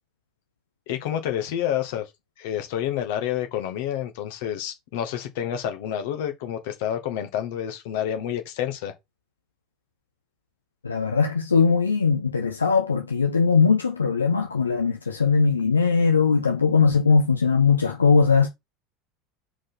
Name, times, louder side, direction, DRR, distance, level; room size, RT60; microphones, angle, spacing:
voice 1, 0.9-2.1 2.4-8.9, left 10 dB, 60° left, 2.0 m, -29 dB
voice 2, 10.8-18.5, left 5 dB, 80° left, 1.1 m, -20 dB
6.4 x 5.0 x 6.2 m
figure-of-eight pair, 75°, 0 cm